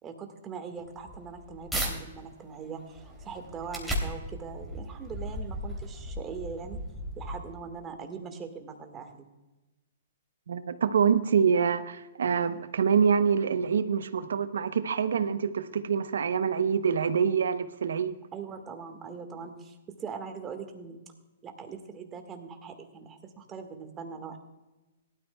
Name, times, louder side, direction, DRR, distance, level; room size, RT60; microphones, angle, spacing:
voice 1, 0.0-6.8 7.2-9.3 18.3-21.0 21.4-24.4, right 6 dB, 20° right, 1.6 m, -41 dB
sound 1, 0.8-1.9 2.5-7.7, equal, ahead, 2.9 m, -36 dB
voice 2, 10.5-18.1, right 6 dB, 85° right, 0.7 m, -26 dB
17.5 x 12.5 x 2.3 m
hypercardioid pair, 145°, 0 cm